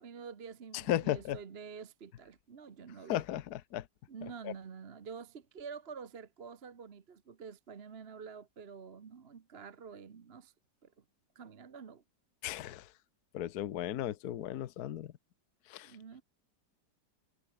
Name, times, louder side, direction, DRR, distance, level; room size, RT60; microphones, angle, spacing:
voice 1, 0.0-3.2 4.1-10.5 10.8-11.0 11.3-12.0 15.8-16.2, right 6 dB, 40° right, 1.2 m, -48 dB
voice 2, 0.7-1.4 3.1-3.9 4.4-4.5 12.4-12.9 13.3-15.1 15.7-15.9, left 12 dB, 65° left, 1.3 m, -35 dB
omnidirectional pair, 1.9 m